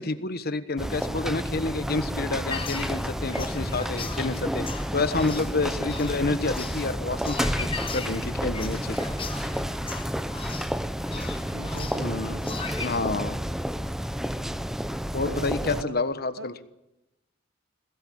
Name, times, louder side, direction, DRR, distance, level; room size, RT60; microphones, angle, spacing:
voice 1, 0.0-4.7 4.9-9.0 12.0-12.4 12.8-13.4 15.1-16.5, left 3 dB, 50° left, 11 dB, 1.3 m, -29 dB
sound 1, 0.8-15.8, equal, ahead, 0.7 m, -30 dB
sound 2, 2.5-12.9, left 5 dB, 25° left, 1.2 m, -39 dB
voice 2, 11.0-12.8 15.2-16.0 16.4-16.5, right 2 dB, 65° right, 12 dB, 1.2 m, -40 dB
21.0 x 17.5 x 8.7 m, 0.94 s
head